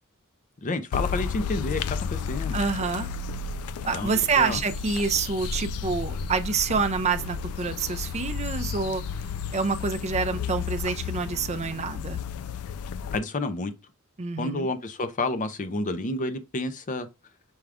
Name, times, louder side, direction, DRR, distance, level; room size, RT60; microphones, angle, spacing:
voice 1, 0.6-1.8 2.1-2.6 3.9-4.6 13.1-13.7 14.4-17.1, left 2 dB, 35° left, 0.5 m, -30 dB
sound 1, 0.9-13.2, left 6 dB, 90° left, 0.4 m, -32 dB
voice 2, 2.5-3.1 3.8-9.0 9.5-12.2 14.2-14.7, right 5 dB, 30° right, 0.5 m, -27 dB
6.2 x 2.3 x 3.4 m
head